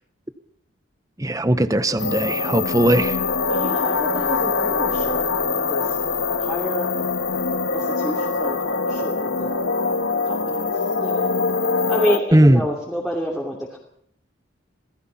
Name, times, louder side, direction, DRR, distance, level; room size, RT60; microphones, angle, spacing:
voice 1, 1.2-3.2 12.3-12.6, right 1 dB, 15° right, 12 dB, 0.9 m, -18 dB
sound 1, 2.0-12.2, left 4 dB, 80° left, 1.5 m, -23 dB
voice 2, 3.5-6.0 6.4-6.9 7.7-9.6 10.2-11.3 11.9-13.8, equal, ahead, -3 dB, 2.9 m, -29 dB
28.0 x 18.5 x 5.8 m, 0.65 s
head